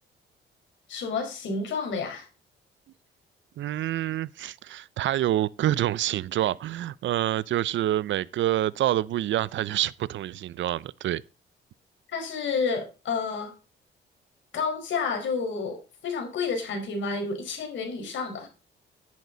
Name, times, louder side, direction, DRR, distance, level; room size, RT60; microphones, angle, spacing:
voice 1, 0.9-2.3 12.1-13.5 14.5-18.5, left 5 dB, 70° left, 4.9 m, -30 dB
voice 2, 3.6-11.2, right 13 dB, 70° right, 0.7 m, -27 dB
11.0 x 10.5 x 4.0 m
cardioid pair, 90°, 20 cm